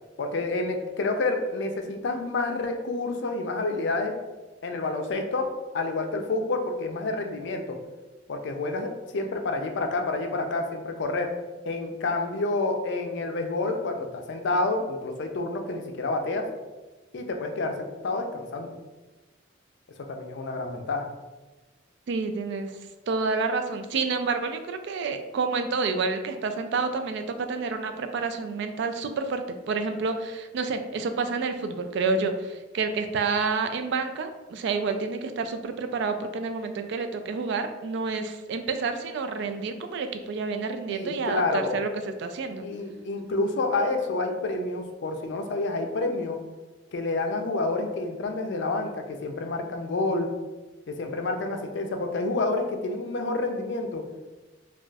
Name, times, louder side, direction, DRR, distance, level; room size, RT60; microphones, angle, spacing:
voice 1, 0.2-4.1 4.6-5.5 5.7-7.8 8.3-11.3 11.6-16.5 17.1-17.8 18.0-18.7 20.1-21.1 40.9-41.8 42.6-46.4 46.9-50.3 50.9-54.0, left 2 dB, 65° left, 4 dB, 0.4 m, -28 dB
voice 2, 22.1-22.7 23.1-41.9 42.2-42.7, right 4 dB, 65° right, 8 dB, 0.3 m, -29 dB
2.3 x 2.3 x 3.9 m, 1.2 s
head